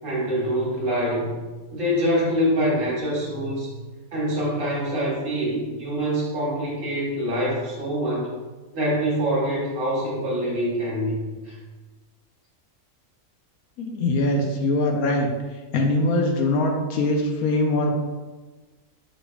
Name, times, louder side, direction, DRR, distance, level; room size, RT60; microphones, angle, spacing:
voice 1, 0.0-1.3 1.7-3.7 4.1-8.3 8.7-11.6, equal, 55° right, -5 dB, 1.5 m, -25 dB
voice 2, 13.8-15.3 15.7-17.9, left 2 dB, 75° left, 2 dB, 1.0 m, -22 dB
6.1 x 3.3 x 2.3 m, 1.3 s
omnidirectional pair, 1.6 m